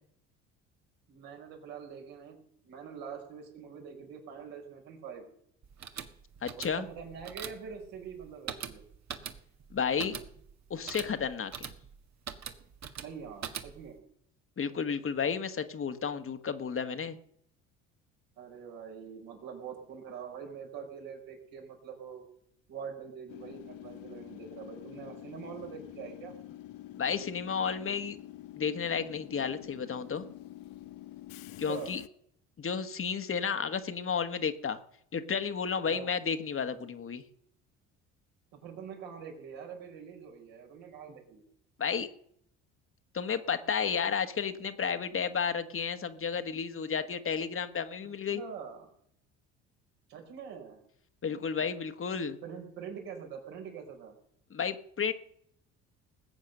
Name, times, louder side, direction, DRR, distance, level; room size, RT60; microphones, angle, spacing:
voice 1, 1.1-2.4 2.6-5.2 6.8-8.8 13.0-14.0 18.4-22.2 22.7-26.3 31.6-32.0 35.8-36.1 38.5-41.4 48.3-48.9 50.1-50.8 52.4-54.1, right 7 dB, 70° right, 2 dB, 5.0 m, -44 dB
sound 1, 5.6-14.0, right 7 dB, 45° right, 1.8 m, -43 dB
voice 2, 6.4-6.9 9.7-10.2 10.7-11.7 14.6-17.2 26.9-28.2 28.5-30.3 31.6-32.0 32.6-34.8 35.1-37.2 41.8-42.1 43.1-48.4 51.2-52.4 54.5-55.1, left 6 dB, 35° left, 9 dB, 1.5 m, -32 dB
Train / Subway metro underground, 23.3-32.1, left 14 dB, 65° left, 0.9 m, -47 dB
20.0 x 8.1 x 6.7 m, 0.70 s
hypercardioid pair, 65°, 37 cm